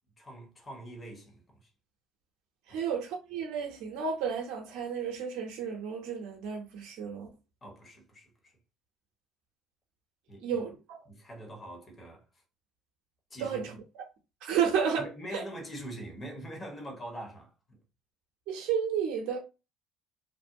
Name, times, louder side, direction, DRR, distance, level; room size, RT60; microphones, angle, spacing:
voice 1, 0.2-1.7 2.7-2.8 7.6-8.5 10.3-10.6 11.1-12.2 13.3-13.6 15.0-17.8, right 1 dB, 30° left, 1.1 m, -43 dB
voice 2, 2.7-7.3 10.4-10.7 13.4-13.7 14.4-15.1 15.3-15.4 18.5-19.4, right 7 dB, 70° right, 0.6 m, -32 dB
2.5 x 2.1 x 2.6 m
hypercardioid pair, 70°, 0 cm